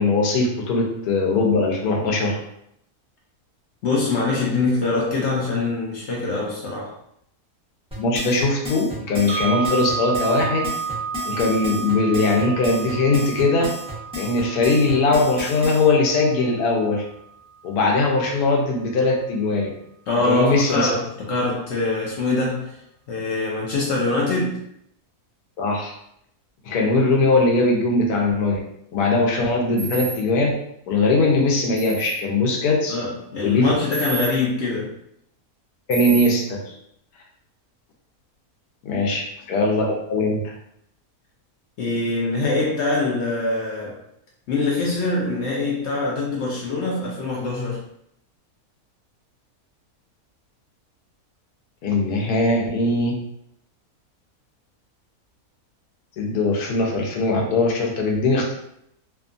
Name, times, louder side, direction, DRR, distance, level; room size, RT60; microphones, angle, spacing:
voice 1, 0.0-2.4 8.0-10.7 11.3-13.7 14.2-17.0 17.6-19.7 20.2-20.9 25.6-25.9 26.6-28.6 28.9-30.5 30.9-32.9 33.4-33.6 35.9-36.7 38.8-39.2 39.5-40.5 51.8-53.1 56.2-58.5, left 2 dB, 85° left, 0 dB, 1.2 m, -20 dB
voice 2, 3.8-7.0 20.1-22.8 23.1-24.6 32.9-34.9 39.1-39.2 41.8-44.0 44.5-47.8, left 3 dB, 65° left, -3 dB, 0.7 m, -24 dB
sound 1, 7.9-15.8, left 2 dB, 5° right, 0.7 m, -33 dB
sound 2, 9.3-17.3, right 6 dB, 80° right, 0.5 m, -32 dB
sound 3, 29.8-30.2 31.8-32.1 33.9-34.3 35.9-36.3, right 4 dB, 50° right, 1.0 m, -30 dB
2.7 x 2.3 x 2.5 m, 0.75 s
omnidirectional pair, 1.6 m